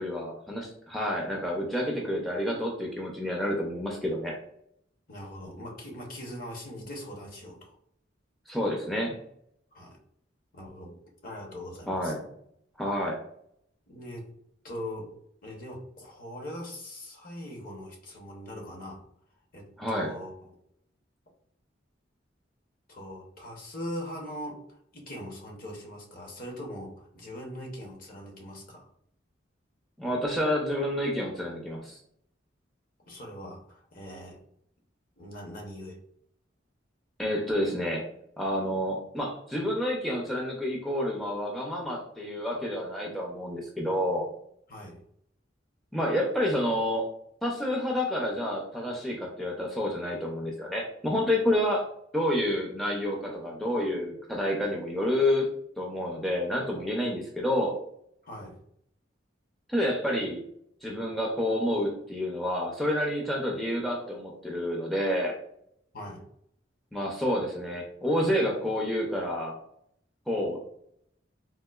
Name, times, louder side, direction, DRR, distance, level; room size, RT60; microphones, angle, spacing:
voice 1, 0.0-4.3 8.5-9.2 11.9-12.2 12.8-13.2 19.8-20.1 30.0-32.0 37.2-38.0 38.4-44.2 45.9-47.1 47.4-51.8 52.1-55.5 55.8-57.7 59.7-60.4 60.8-65.3 66.9-69.6 70.3-70.6, left 1 dB, ahead, -2 dB, 0.4 m, -29 dB
voice 2, 5.1-7.8 9.7-10.0 10.5-11.0 11.2-12.1 13.9-14.3 14.6-15.1 15.4-19.0 19.5-20.5 22.9-28.9 33.1-34.4 35.2-36.0 44.7-45.0 58.2-58.6 65.9-66.3, left 1 dB, 50° left, 0 dB, 0.7 m, -41 dB
3.7 x 2.4 x 2.3 m, 0.71 s
head